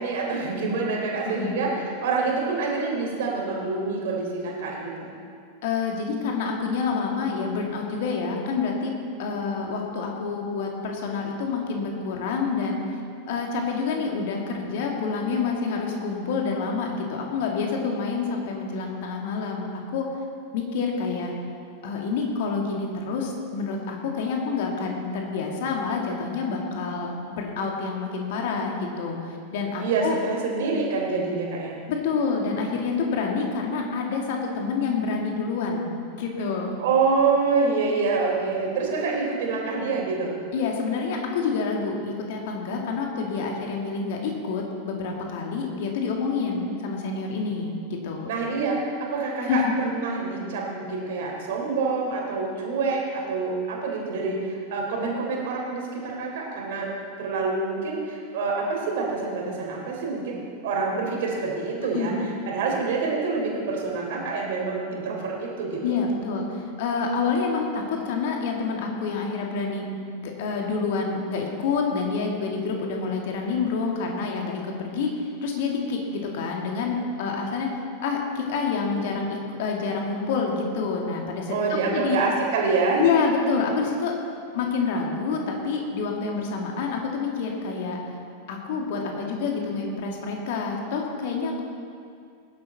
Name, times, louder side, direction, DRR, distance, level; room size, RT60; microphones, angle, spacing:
voice 1, 0.0-5.1 29.8-31.8 36.8-40.3 48.2-56.9 57.2-62.1 62.5-66.0 81.5-83.1, right 4 dB, 55° right, -1 dB, 3.3 m, -26 dB
voice 2, 1.3-1.6 5.6-8.9 9.2-13.0 13.3-20.1 20.5-21.3 21.8-30.2 31.9-36.7 40.5-48.3 49.4-49.7 61.9-62.2 65.8-69.9 70.1-82.2 83.0-84.2 84.5-88.0 88.5-91.6, left 4 dB, 50° left, 1 dB, 2.4 m, -28 dB
19.5 x 11.0 x 4.3 m, 2.3 s
figure-of-eight pair, 90°, 0 cm